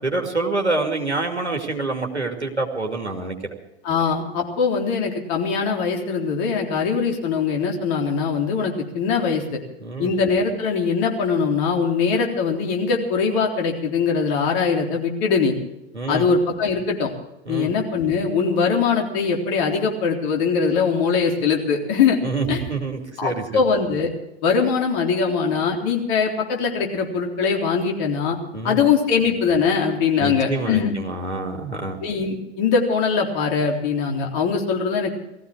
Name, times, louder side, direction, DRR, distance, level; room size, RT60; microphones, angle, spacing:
voice 1, 0.0-3.5 9.8-10.1 15.9-16.2 17.5-17.7 22.2-23.6 28.5-28.8 30.2-32.0, right 3 dB, 85° right, 2 dB, 2.5 m, -26 dB
voice 2, 3.8-9.4 10.0-15.5 16.1-17.1 17.5-22.2 22.5-22.6 23.2-24.1 24.4-28.4 28.6-30.9 32.0-35.1, left 5 dB, 45° left, 1 dB, 3.7 m, -21 dB
18.5 x 15.5 x 4.8 m, 0.91 s
figure-of-eight pair, 90°, 33 cm